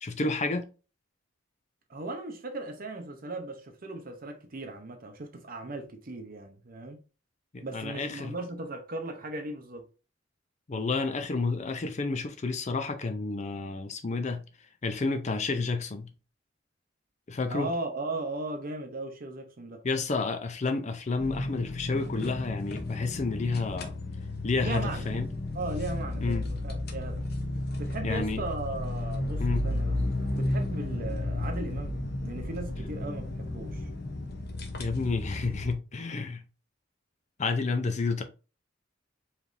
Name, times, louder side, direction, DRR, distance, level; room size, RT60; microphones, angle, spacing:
voice 1, 0.0-0.7 7.5-8.3 10.7-14.4 14.8-16.1 17.3-17.7 19.8-24.0 24.4-25.3 26.2-26.4 28.0-28.4 29.4-29.7 34.8-36.4 37.4-38.2, left 3 dB, 35° left, 0.5 m, -30 dB
voice 2, 1.9-7.0 7.6-9.8 17.5-19.8 24.6-25.0 25.5-27.2 27.8-29.9 30.3-32.0 32.2-33.9, right 2 dB, 50° right, 0.7 m, -37 dB
sound 1, 21.2-35.7, left 1 dB, 55° left, 0.9 m, -33 dB
5.0 x 3.3 x 2.6 m
head